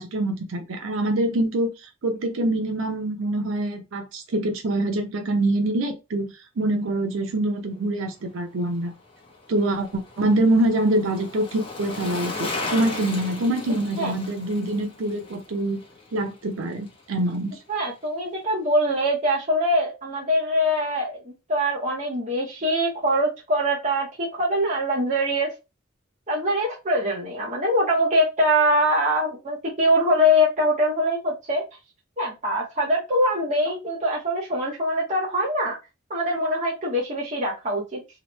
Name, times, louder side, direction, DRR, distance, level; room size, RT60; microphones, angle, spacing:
voice 1, 0.0-1.7 2.0-6.3 6.6-8.9 9.5-15.8 16.1-17.6, right 1 dB, 70° right, 0.5 m, -25 dB
Bicycle, 8.6-17.0 17.3-17.4, left 3 dB, 25° left, 0.6 m, -36 dB
voice 2, 17.7-25.5 26.3-31.6 32.2-35.7 36.1-38.0, equal, 35° right, 0.7 m, -23 dB
2.9 x 2.0 x 2.9 m
head